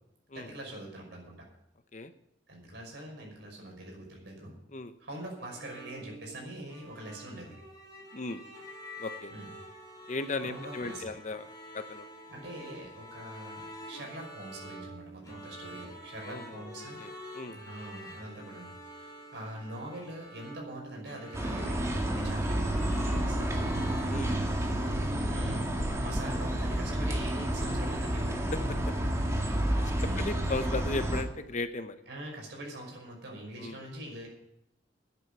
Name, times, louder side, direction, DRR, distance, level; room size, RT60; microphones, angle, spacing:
voice 1, 0.3-1.4 2.5-4.5 5.0-7.5 9.3-9.5 10.4-11.2 12.3-17.0 17.5-23.8 25.3-25.7 26.0-28.4 30.0-30.5 32.1-34.3, right 1 dB, 65° right, -1 dB, 5.8 m, -43 dB
sound 1, 5.5-24.4, equal, 20° left, 3.8 m, -47 dB
voice 2, 9.0-9.3 10.1-11.5 11.7-12.1 16.2-17.6 24.1-24.4 29.8-32.0 33.6-33.9, left 3 dB, 40° left, 10 dB, 0.8 m, -36 dB
sound 2, 21.3-31.2, right 1 dB, 15° right, 1.9 m, -30 dB
10.0 x 9.1 x 9.1 m, 0.80 s
head